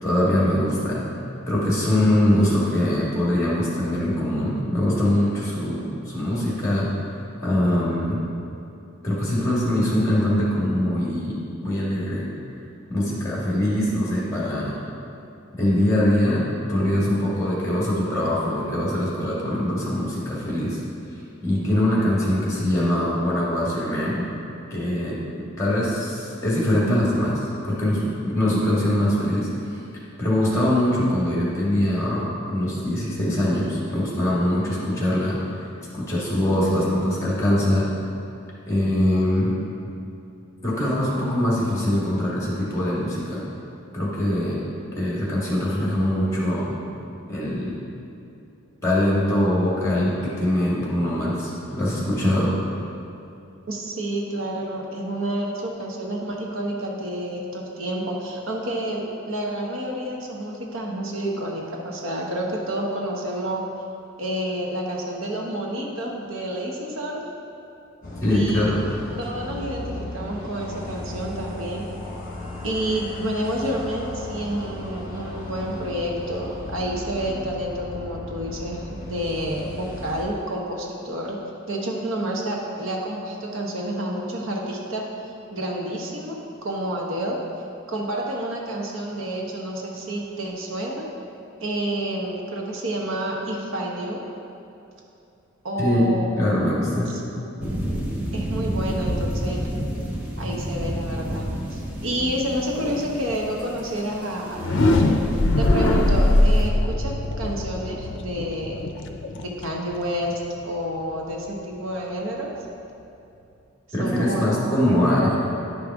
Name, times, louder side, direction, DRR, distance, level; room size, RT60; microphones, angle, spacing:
voice 1, 0.0-1.0 1.5-6.9 7.4-8.2 9.0-11.4 11.6-12.2 12.9-14.7 15.5-20.8 21.4-24.3 24.7-25.2 25.6-29.8 30.2-35.4 35.9-37.9 38.7-39.5 40.6-43.4 43.9-44.6 44.9-46.7 47.3-47.8 48.8-52.5 68.2-68.8 95.8-96.1 96.4-97.1 113.9-115.3, left 1 dB, 15° left, -6 dB, 1.7 m, -22 dB
voice 2, 53.7-63.6 64.2-67.2 68.3-68.8 69.2-71.8 72.6-81.4 81.7-85.1 85.5-86.4 86.6-87.4 87.9-91.0 91.6-94.2 95.6-96.5 97.1-97.7 98.3-99.6 100.4-105.2 105.6-108.8 109.4-112.5 114.0-115.3, right 1 dB, 70° right, -1 dB, 1.0 m, -29 dB
sound 1, 68.0-80.2, left 1 dB, 40° left, 1.4 m, -35 dB
sound 2, 97.6-106.7, equal, 5° right, 0.7 m, -31 dB
sound 3, 104.5-110.4, left 1 dB, 60° left, 0.5 m, -21 dB
10.5 x 5.2 x 3.5 m, 2.7 s
head